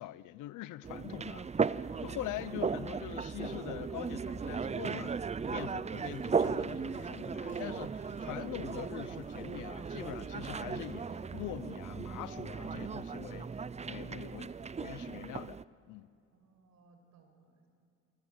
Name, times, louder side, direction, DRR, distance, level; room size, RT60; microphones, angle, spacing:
voice 1, 0.0-1.8 2.0-13.6 13.9-15.6 15.9-16.1, left 15 dB, 85° left, 0.8 m, -43 dB
sound 1, 0.8-15.6, right 5 dB, 20° right, 0.5 m, -36 dB
voice 2, 1.9-2.4 16.3-17.7, right 4 dB, 70° right, 5.8 m, -64 dB
sound 2, 5.9-11.8, left 4 dB, 40° left, 3.1 m, -58 dB
26.5 x 25.0 x 8.1 m
cardioid pair, 90°, 30 cm